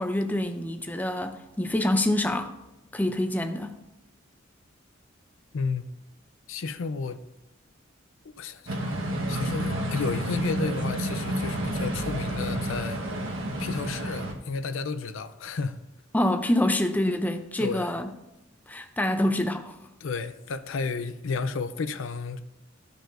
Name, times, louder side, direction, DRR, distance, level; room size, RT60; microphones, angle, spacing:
voice 1, 0.0-2.5 2.9-3.8 16.1-18.1 18.7-19.8, left 1 dB, 10° left, 0.4 m, -26 dB
voice 2, 5.5-5.9 6.5-7.2 8.4-9.0 9.3-13.0 13.6-15.8 17.6-17.9 20.0-22.4, left 4 dB, 75° left, 0.5 m, -32 dB
sound 1, 8.7-14.3, right 1 dB, 80° right, 1.2 m, -30 dB
14.0 x 5.1 x 2.5 m
head